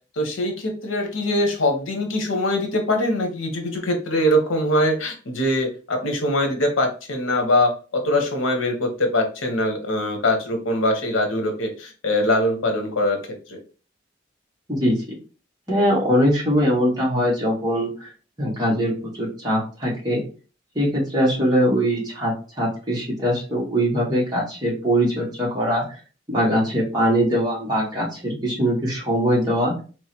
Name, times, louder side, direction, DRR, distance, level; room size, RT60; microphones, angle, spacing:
voice 1, 0.2-13.2 13.5-13.6, left 1 dB, 85° left, 4 dB, 1.0 m, -22 dB
voice 2, 14.7-15.0 15.7-18.1 18.4-20.2 20.7-25.8 26.3-29.7, equal, 20° right, -4 dB, 1.5 m, -22 dB
3.7 x 3.1 x 2.9 m, 0.35 s
head